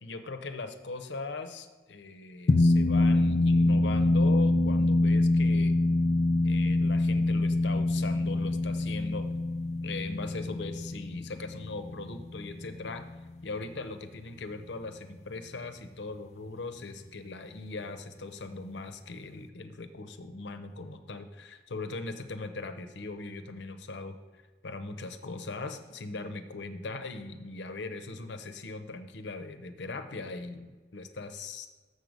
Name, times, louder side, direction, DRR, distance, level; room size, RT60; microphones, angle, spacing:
voice 1, 0.0-5.8 6.4-9.3 9.8-13.0 13.4-24.2 24.6-31.7, left 3 dB, 85° left, 8 dB, 0.7 m, -39 dB
sound 1, 2.5-13.2, left 2 dB, 40° left, 0.3 m, -25 dB
6.6 x 6.4 x 5.2 m, 1.3 s
head